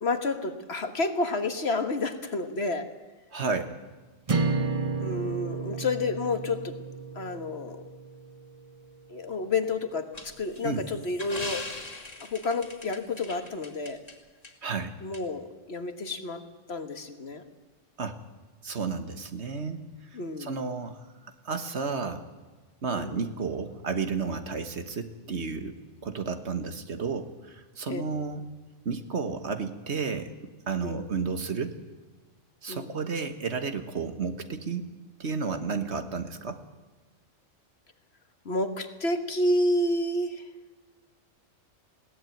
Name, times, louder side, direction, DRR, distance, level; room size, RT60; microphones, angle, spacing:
voice 1, 0.0-2.9 5.0-6.8 7.1-7.8 9.1-11.7 12.2-14.0 15.0-16.4 16.7-17.4 20.1-20.5 22.9-23.2 27.9-28.0 30.8-31.1 32.7-33.0 38.4-40.5, left 2 dB, 50° left, 8 dB, 1.7 m, -30 dB
voice 2, 3.3-3.8 10.6-10.8 14.6-14.9 18.0-18.2 18.6-19.8 20.4-21.0 21.4-22.2 22.8-25.7 26.0-28.5 28.8-30.3 30.7-31.8 32.6-34.9 35.2-36.6, right 5 dB, 55° right, 8 dB, 1.6 m, -32 dB
sound 1, 4.3-8.6, right 4 dB, 30° right, 0.9 m, -32 dB
sound 2, 10.1-14.1 14.4-14.5 15.1-15.2, left 2 dB, 30° left, 2.5 m, -40 dB
21.0 x 17.0 x 9.2 m, 1.3 s
omnidirectional pair, 1.4 m